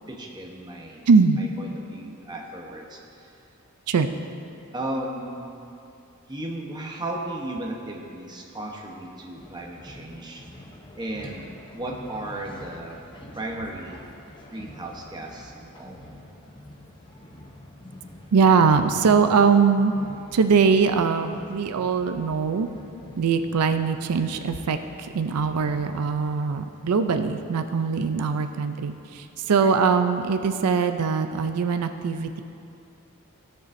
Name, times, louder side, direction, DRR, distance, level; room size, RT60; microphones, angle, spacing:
voice 1, 0.1-1.1 1.4-3.3 4.7-5.5 6.3-10.4 10.9-13.0 13.4-14.1 14.5-16.0 28.0-28.3 29.6-29.7, right 1 dB, 20° right, -1 dB, 0.9 m, -35 dB
voice 2, 1.1-1.4 3.9-4.1 18.3-19.9 20.3-22.7 23.2-32.4, right 5 dB, 85° right, 8 dB, 0.4 m, -21 dB
sound 1, 9.3-26.4, left 1 dB, 20° left, 0.7 m, -46 dB
16.0 x 6.7 x 2.6 m, 2.6 s
head